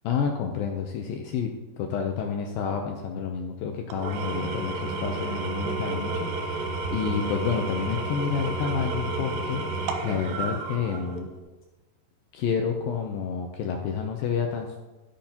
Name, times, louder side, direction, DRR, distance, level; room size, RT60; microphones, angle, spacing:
voice 1, 0.1-11.3 12.3-14.8, left 6 dB, 80° left, 2 dB, 2.1 m, -29 dB
Engine / Tools, 3.9-11.4, right 3 dB, 80° right, 2.1 m, -31 dB
14.0 x 8.5 x 2.9 m, 1.2 s
omnidirectional pair, 4.9 m